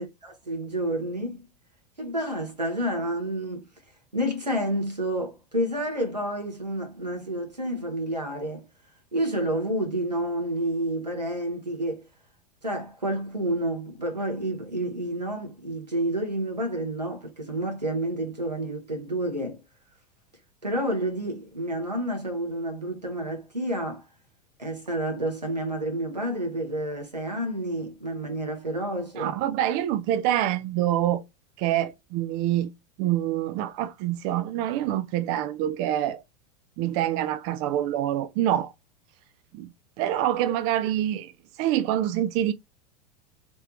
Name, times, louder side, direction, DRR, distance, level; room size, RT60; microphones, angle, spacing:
voice 1, 0.0-1.5 2.0-3.7 4.1-8.6 9.1-12.0 12.6-19.6 20.6-24.0 24.6-29.3, right 1 dB, 90° right, 1.4 m, -29 dB
voice 2, 29.2-31.2 31.6-32.7 33.0-36.2 36.8-38.7 39.5-39.7 40.0-41.3 41.6-42.5, right 12 dB, 40° right, 0.4 m, -26 dB
3.4 x 3.3 x 2.9 m
figure-of-eight pair, 85°, 21 cm